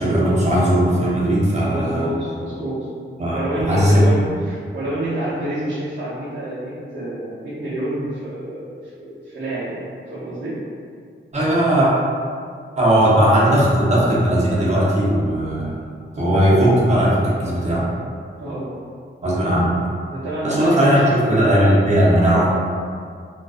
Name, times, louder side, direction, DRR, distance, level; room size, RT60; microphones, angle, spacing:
voice 1, 0.0-2.1 3.2-3.4 3.7-4.0 11.3-11.9 12.8-15.8 16.2-17.8 19.2-19.8 20.4-22.5, equal, 35° right, -7 dB, 0.7 m, -17 dB
voice 2, 1.7-2.9 3.3-10.6 16.3-16.6 18.4-18.7 19.3-19.7 20.1-21.6 22.2-22.5, right 1 dB, 75° right, -13 dB, 0.7 m, -28 dB
2.3 x 2.3 x 2.4 m, 2.1 s
wide cardioid pair, 85°, 20 cm